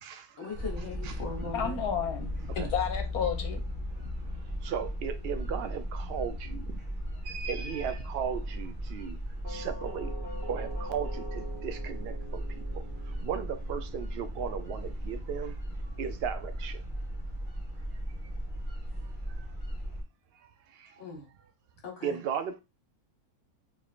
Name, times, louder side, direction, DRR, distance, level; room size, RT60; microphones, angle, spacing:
voice 1, 0.4-1.8 21.0-21.3 21.8-22.2, left 5 dB, 65° left, 1.6 m, -40 dB
sound 1, 0.5-20.0, equal, 10° right, 1.0 m, -36 dB
voice 2, 1.5-3.6, left 7 dB, 80° left, 1.3 m, -31 dB
voice 3, 4.6-6.6 7.3-9.2 9.5-10.1 10.5-12.4 13.2-15.5 16.0-16.8 22.0-22.6, right 7 dB, 90° right, 0.5 m, -35 dB
Doorbell, 9.4-18.3, right 1 dB, 45° right, 1.2 m, -47 dB
3.6 x 3.3 x 2.4 m
omnidirectional pair, 1.6 m